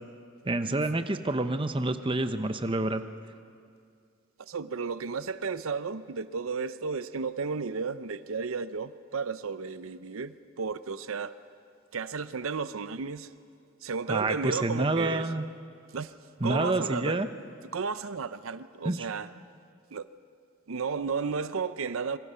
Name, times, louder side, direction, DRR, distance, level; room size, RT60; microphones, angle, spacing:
voice 1, 0.4-3.0 14.1-15.4 16.4-17.3 18.8-19.0, right 2 dB, 25° right, 9 dB, 0.8 m, -28 dB
voice 2, 4.4-11.4 11.9-13.3 13.8-15.3 15.9-16.1 16.4-17.2 17.7-19.3 19.9-20.1 20.7-22.2, right 5 dB, 85° right, 13 dB, 0.7 m, -33 dB
27.0 x 22.5 x 5.6 m, 2.3 s
head